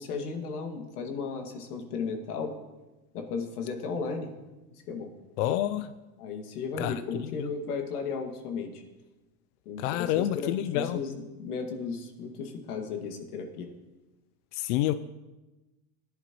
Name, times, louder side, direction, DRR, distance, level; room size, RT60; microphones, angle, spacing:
voice 1, 0.0-2.5 3.1-4.3 4.9-5.1 6.2-8.8 9.7-13.7, left 5 dB, 85° left, 3 dB, 2.0 m, -35 dB
voice 2, 5.4-5.9 6.8-6.9 9.8-11.0 14.5-14.9, left 13 dB, 55° left, 12 dB, 0.5 m, -28 dB
18.0 x 10.5 x 3.0 m, 1.1 s
supercardioid pair, 130°, 44 cm